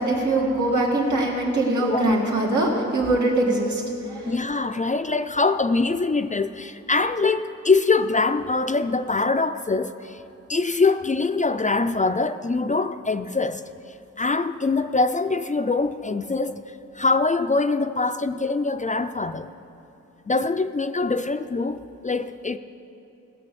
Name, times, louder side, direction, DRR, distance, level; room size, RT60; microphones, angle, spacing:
voice 1, 0.0-4.4, right 2 dB, 80° right, -3 dB, 2.4 m, -22 dB
voice 2, 1.8-2.1 4.2-10.2 10.5-13.6 14.2-16.6 16.9-19.5 20.3-22.6, left 3 dB, 25° left, 10 dB, 0.4 m, -23 dB
16.5 x 6.2 x 6.9 m, 3.0 s
cardioid pair, 65°, 30 cm